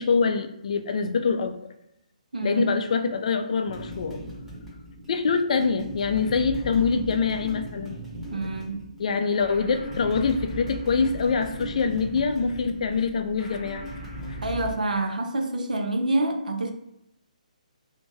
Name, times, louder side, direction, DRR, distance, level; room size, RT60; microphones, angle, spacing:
voice 1, 0.0-1.7 2.4-4.2 5.1-8.0 9.0-13.9 14.3-14.4, left 5 dB, 55° left, 0.4 m, -25 dB
voice 2, 2.3-2.8 8.3-8.9 14.4-16.7, right 2 dB, 80° right, 0.5 m, -27 dB
sound 1, 3.7-14.7, equal, 5° right, 0.9 m, -38 dB
2.7 x 2.1 x 3.3 m
figure-of-eight pair, 145°, 4 cm